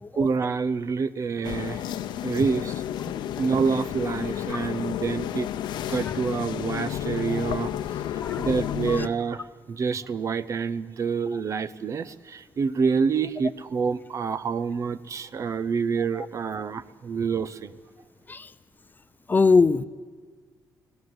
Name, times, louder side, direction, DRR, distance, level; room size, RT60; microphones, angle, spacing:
voice 1, 0.2-1.8 2.2-2.7 3.4-5.5 5.9-7.7 8.4-17.7, right 5 dB, 45° right, 16 dB, 0.8 m, -27 dB
sound 1, 1.4-9.1, left 11 dB, 85° left, 0.8 m, -31 dB
voice 2, 19.3-19.8, left 4 dB, 25° left, 14 dB, 0.6 m, -22 dB
24.0 x 18.0 x 8.1 m, 1.4 s
cardioid pair, 115°, 8 cm